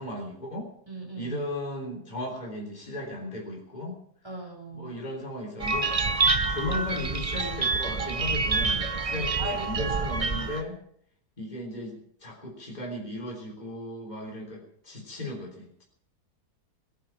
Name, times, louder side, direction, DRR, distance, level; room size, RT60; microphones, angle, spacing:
voice 1, 0.0-0.7 1.2-4.0 4.7-10.8 11.4-15.8, left 1 dB, 25° left, 0 dB, 3.6 m, -36 dB
voice 2, 0.9-1.4 4.2-5.0 9.1-9.8, equal, 15° right, 1 dB, 4.7 m, -39 dB
sound 1, 5.6-10.6, right 4 dB, 35° right, 0.6 m, -27 dB
21.0 x 9.4 x 7.2 m, 0.63 s
omnidirectional pair, 1.7 m